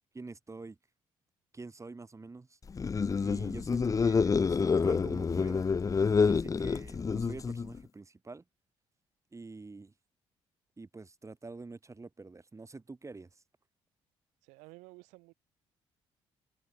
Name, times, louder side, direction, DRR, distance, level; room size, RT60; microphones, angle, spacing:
voice 1, 0.1-0.8 1.5-2.6 3.2-5.7 6.2-8.4 9.3-9.9 10.8-13.3, right 3 dB, 25° right, 2.6 m, -46 dB
sound 1, 2.7-7.8, left 5 dB, 30° left, 0.5 m, -28 dB
voice 2, 14.4-15.3, right 25 dB, 90° right, 5.0 m, -53 dB
open air
supercardioid pair, 65°, 12 cm